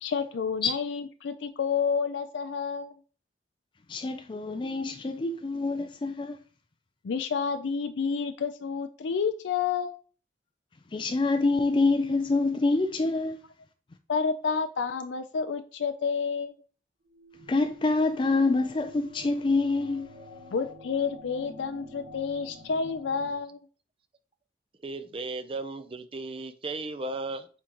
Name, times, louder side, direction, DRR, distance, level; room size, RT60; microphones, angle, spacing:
voice 1, 0.0-2.9 7.0-10.0 14.1-16.5 20.5-23.6, left 5 dB, 90° left, 0.4 m, -29 dB
voice 2, 3.9-6.4 10.9-13.4 17.5-20.1, left 3 dB, 30° left, 0.4 m, -26 dB
sound 1, 17.1-23.3, equal, 60° right, 1.6 m, -49 dB
voice 3, 24.8-27.5, right 2 dB, 30° right, 0.5 m, -35 dB
8.6 x 3.8 x 3.0 m
head